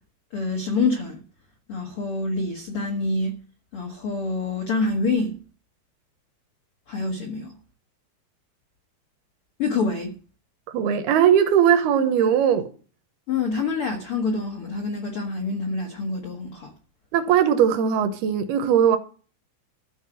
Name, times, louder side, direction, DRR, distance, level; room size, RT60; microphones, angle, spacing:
voice 1, 0.3-1.2 1.7-3.4 3.7-5.4 6.9-7.5 9.6-10.1 13.3-16.7, left 3 dB, 75° left, 1.3 m, -26 dB
voice 2, 10.7-12.7 17.1-19.0, right 8 dB, 75° right, 2.8 m, -19 dB
13.5 x 5.0 x 7.6 m
omnidirectional pair, 4.7 m